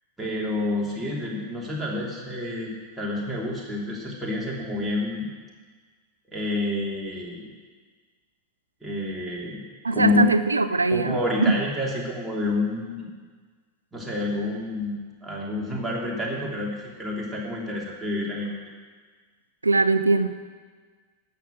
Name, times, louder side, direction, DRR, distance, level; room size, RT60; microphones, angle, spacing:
voice 1, 0.2-5.3 6.3-7.5 8.8-9.6 9.9-10.3 10.9-13.1 13.9-14.9 15.2-18.5, left 2 dB, 5° right, -4 dB, 3.3 m, -28 dB
voice 2, 9.8-11.6 19.6-20.3, right 3 dB, 80° right, 13 dB, 0.5 m, -21 dB
11.5 x 8.1 x 7.7 m, 1.5 s
figure-of-eight pair, 90°, 0 cm